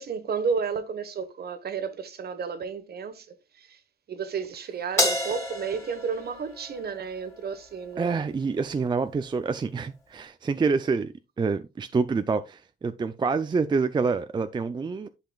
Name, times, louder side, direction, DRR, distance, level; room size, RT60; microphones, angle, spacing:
voice 1, 0.0-3.8 4.1-8.3, right 6 dB, 50° right, 1.2 m, -32 dB
Crash cymbal, 5.0-7.5, left 1 dB, 15° left, 3.0 m, -29 dB
voice 2, 8.0-15.1, right 4 dB, 25° right, 0.4 m, -27 dB
10.5 x 5.7 x 2.3 m
cardioid pair, 90°, 20 cm